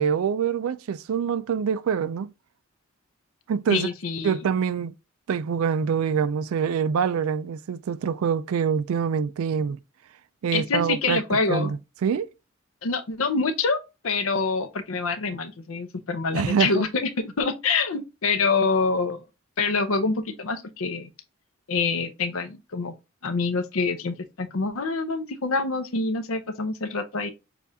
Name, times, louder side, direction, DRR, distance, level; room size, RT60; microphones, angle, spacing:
voice 1, 0.0-2.3 3.5-3.9 4.2-4.9 5.3-9.8 10.4-11.2 11.5-12.3 16.3-16.9, right 7 dB, 85° right, 0.3 m, -25 dB
voice 2, 3.7-4.4 10.5-11.7 12.8-13.8 14.0-19.2 19.6-21.1 21.7-22.9 23.2-27.3, left 4 dB, 75° left, 0.7 m, -26 dB
6.8 x 2.4 x 2.7 m
head